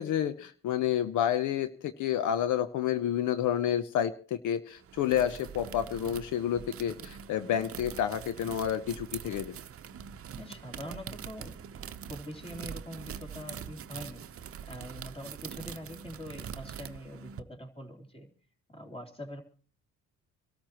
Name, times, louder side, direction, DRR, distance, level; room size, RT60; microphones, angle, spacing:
voice 1, 0.0-9.5, left 10 dB, 80° left, 11 dB, 0.8 m, -29 dB
sound 1, 4.8-17.4, right 8 dB, 50° right, 0.8 m, -43 dB
voice 2, 10.3-14.2 14.7-18.3 18.7-19.4, equal, 20° left, 2 dB, 3.2 m, -44 dB
26.0 x 13.0 x 3.0 m, 0.39 s
cardioid pair, 90°, 30 cm